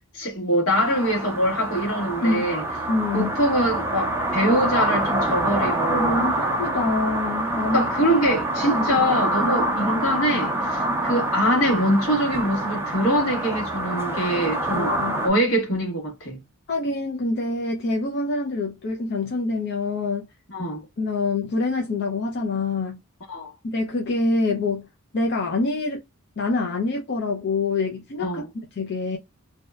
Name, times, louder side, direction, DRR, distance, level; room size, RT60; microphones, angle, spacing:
voice 1, 0.1-2.6 3.1-6.2 7.7-15.0 15.2-16.4 20.5-20.8 23.3-23.5 28.2-28.5, equal, 70° left, 1.3 m, -23 dB
sound 1, 0.7-15.3, right 1 dB, 10° right, 0.4 m, -26 dB
voice 2, 2.2-2.5 2.9-3.3 5.6-7.9 8.7-9.1 14.7-15.3 16.7-20.3 21.0-23.0 23.6-24.8 25.1-26.0 26.4-28.4 28.8-29.2, left 3 dB, 50° left, 0.4 m, -26 dB
2.7 x 2.1 x 2.2 m
head